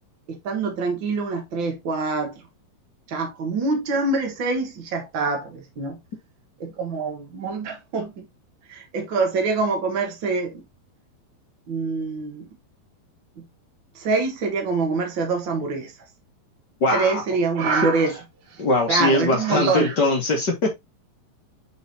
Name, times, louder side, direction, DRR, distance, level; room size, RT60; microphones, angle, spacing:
voice 1, 0.3-2.3 3.1-6.0 6.6-8.1 8.7-10.5 11.7-12.4 14.0-15.9 16.9-18.1 18.9-19.9, right 4 dB, 75° right, 1.1 m, -25 dB
voice 2, 16.8-17.2 17.6-17.8 18.6-20.7, left 2 dB, 60° left, 1.1 m, -21 dB
7.9 x 4.5 x 2.8 m
omnidirectional pair, 4.4 m